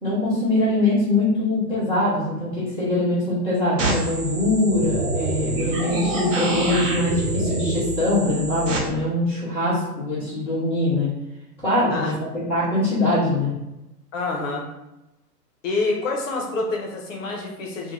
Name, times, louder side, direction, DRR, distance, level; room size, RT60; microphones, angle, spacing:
voice 1, 0.0-11.1 11.6-13.5, left 2 dB, 5° right, -18 dB, 0.4 m, -23 dB
sound 1, 3.8-8.8, right 1 dB, 50° right, 0.7 m, -26 dB
voice 2, 14.1-14.7 15.6-17.9, left 3 dB, 50° left, 0 dB, 0.8 m, -27 dB
2.4 x 2.3 x 3.0 m, 0.92 s
hypercardioid pair, 125°, 49 cm